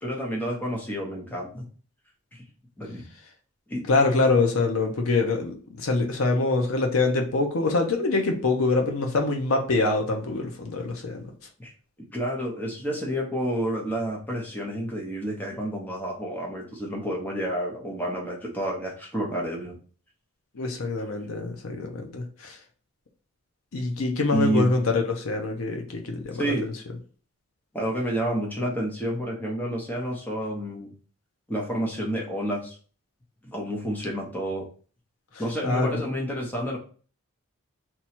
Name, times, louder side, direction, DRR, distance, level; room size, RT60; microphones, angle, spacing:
voice 1, 0.0-1.6 2.3-2.4 2.8-3.0 3.7-3.8 11.6-11.7 12.1-19.8 24.3-24.7 26.4-26.7 27.7-30.9 31.5-32.8 33.4-34.7 35.4-36.8, equal, 10° left, 0.7 m, -29 dB
voice 2, 3.9-11.3 20.5-22.6 23.7-26.7 35.6-36.0, left 3 dB, 70° left, 0.6 m, -25 dB
2.9 x 2.3 x 4.2 m
head